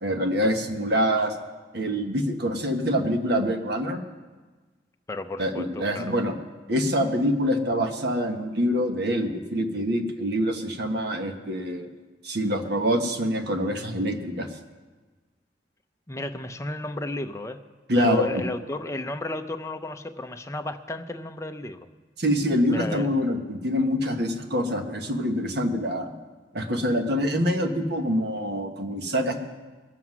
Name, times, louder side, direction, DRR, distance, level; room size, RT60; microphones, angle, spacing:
voice 1, 0.0-1.3 1.7-4.0 5.4-6.3 6.7-11.9 12.2-14.5 17.9-18.4 22.2-26.1 26.5-29.3, equal, 65° right, 5 dB, 1.3 m, -25 dB
voice 2, 5.1-6.2 16.1-17.6 18.0-21.8 22.7-23.1, left 2 dB, 15° left, 6 dB, 0.6 m, -33 dB
20.5 x 7.7 x 6.1 m, 1.3 s
head